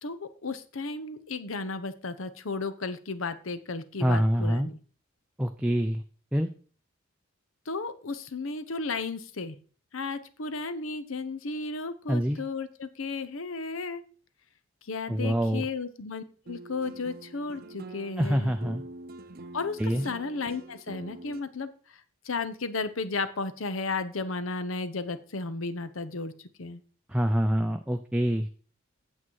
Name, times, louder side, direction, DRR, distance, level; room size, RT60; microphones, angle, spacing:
voice 1, 0.0-4.8 7.7-9.6 9.9-14.0 14.8-18.5 19.5-21.7 22.2-26.8, left 3 dB, 70° left, 13 dB, 0.9 m, -34 dB
voice 2, 4.0-4.7 5.4-6.0 6.3-6.5 12.1-12.4 15.1-15.7 18.2-18.8 19.8-20.0 27.1-28.5, equal, 5° right, 5 dB, 0.4 m, -25 dB
sound 1, 16.5-21.4, right 2 dB, 45° right, 0.7 m, -45 dB
8.6 x 7.4 x 4.7 m, 0.41 s
head